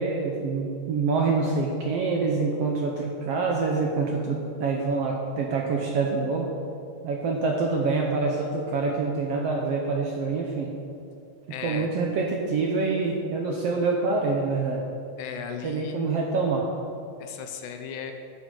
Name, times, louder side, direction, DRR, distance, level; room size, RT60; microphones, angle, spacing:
voice 1, 0.0-6.5 7.0-10.7 11.6-14.8 15.6-16.7, right 4 dB, 70° right, 0 dB, 1.5 m, -26 dB
voice 2, 11.5-11.9 15.2-16.0 17.2-18.1, left 7 dB, 75° left, 5 dB, 2.1 m, -36 dB
11.5 x 5.5 x 7.7 m, 2.5 s
omnidirectional pair, 3.6 m